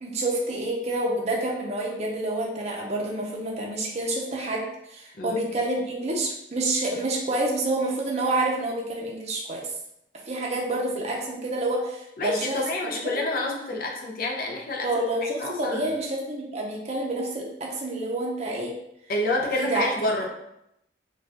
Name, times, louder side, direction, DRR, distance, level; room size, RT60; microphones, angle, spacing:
voice 1, 0.0-4.6 4.9-9.6 10.3-12.6 14.8-18.7 19.6-19.8, right 2 dB, 35° right, -2 dB, 0.6 m, -28 dB
voice 2, 12.2-14.9 15.4-15.9 19.1-20.2, left 2 dB, 50° left, 0 dB, 0.6 m, -28 dB
4.2 x 2.3 x 2.8 m, 0.81 s
head